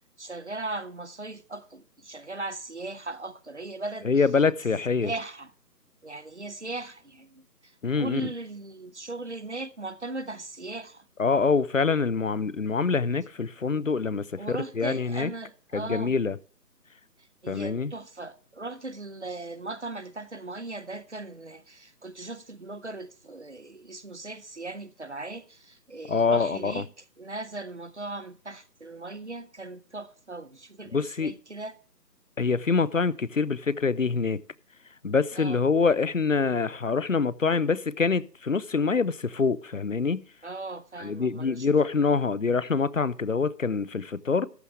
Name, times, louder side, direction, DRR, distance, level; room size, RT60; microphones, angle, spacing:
voice 1, 0.2-4.1 5.0-5.5 6.0-11.0 14.4-16.1 17.4-26.9 27.2-31.8 35.4-35.7 40.4-41.7, right 2 dB, 45° right, 0.6 m, -38 dB
voice 2, 4.0-5.1 7.8-8.3 11.2-15.3 15.7-16.4 17.5-17.9 26.1-26.8 30.9-31.3 32.4-34.4 35.0-40.2 41.0-44.5, left 4 dB, 55° left, 0.5 m, -25 dB
14.0 x 11.0 x 3.3 m
figure-of-eight pair, 175°, 49 cm